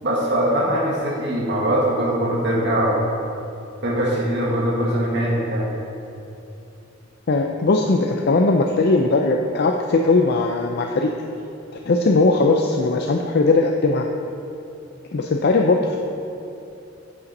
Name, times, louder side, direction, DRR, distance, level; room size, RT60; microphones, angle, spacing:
voice 1, 0.0-3.0 3.8-5.7, right 1 dB, 60° right, -4 dB, 1.5 m, -21 dB
voice 2, 7.3-11.1 11.7-14.0 15.1-16.0, left 3 dB, 55° left, 2 dB, 0.5 m, -19 dB
8.5 x 6.8 x 5.4 m, 2.8 s
head